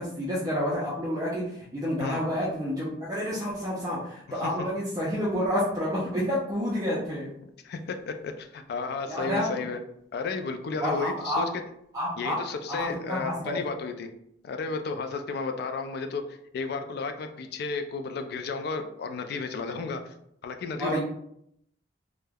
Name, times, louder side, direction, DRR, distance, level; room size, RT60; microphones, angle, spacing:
voice 1, 0.0-7.3 9.1-9.7 10.8-11.4 11.9-12.4 12.7-13.6 20.8-21.0, equal, 20° right, -7 dB, 0.4 m, -29 dB
voice 2, 7.6-9.8 10.1-11.5 12.2-14.1 14.4-20.1 20.4-21.0, left 4 dB, 60° left, 7 dB, 0.3 m, -33 dB
3.2 x 2.1 x 2.2 m, 0.74 s
head